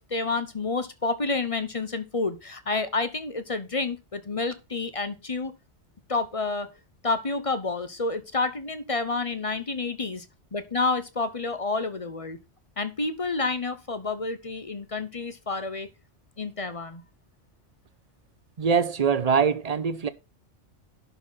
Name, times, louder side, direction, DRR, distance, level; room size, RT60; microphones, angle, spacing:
voice 1, 0.0-5.5 6.1-6.7 7.0-10.2 10.5-12.4 12.8-15.9 16.4-17.0, left 3 dB, 30° left, 0.9 m, -29 dB
voice 2, 18.6-20.1, right 6 dB, 40° right, 0.8 m, -23 dB
11.0 x 4.2 x 5.7 m
omnidirectional pair, 1.2 m